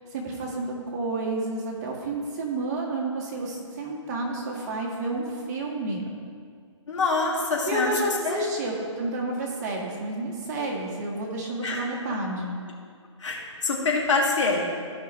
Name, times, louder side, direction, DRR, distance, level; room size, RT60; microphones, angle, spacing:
voice 1, 0.1-6.0 7.7-12.5, right 2 dB, 35° right, -2 dB, 1.7 m, -30 dB
voice 2, 6.9-7.9 8.2-8.4 11.6-11.8 13.2-14.6, left 3 dB, 70° left, -2 dB, 2.1 m, -25 dB
15.5 x 5.5 x 3.1 m, 2.2 s
hypercardioid pair, 145°, 16 cm